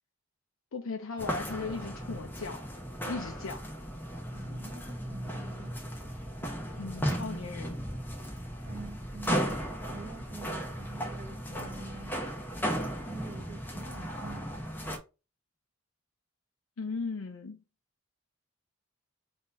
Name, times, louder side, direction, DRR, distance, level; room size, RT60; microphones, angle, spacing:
voice 1, 0.7-2.6 3.0-3.6 6.8-7.8 16.8-17.6, left 4 dB, 80° left, 0.6 m, -37 dB
sound 1, 1.2-15.0, equal, 10° left, 0.9 m, -36 dB
voice 2, 4.3-5.9 8.6-12.1 12.9-14.7, right 2 dB, 20° right, 0.9 m, -47 dB
3.9 x 2.9 x 4.1 m
head